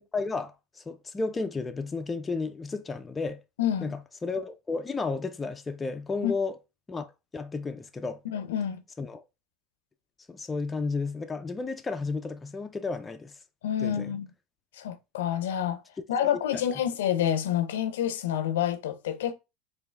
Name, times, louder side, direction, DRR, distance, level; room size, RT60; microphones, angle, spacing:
voice 1, 0.0-3.4 3.8-6.6 6.9-8.2 9.0-9.2 10.3-13.3 13.8-14.1, left 4 dB, 15° left, 0.4 m, -33 dB
voice 2, 3.6-3.9 6.2-6.3 8.2-8.8 13.6-14.3 14.7-15.8 16.1-19.3, left 10 dB, 85° left, 0.6 m, -28 dB
4.5 x 2.6 x 3.3 m
supercardioid pair, 110°, 0 cm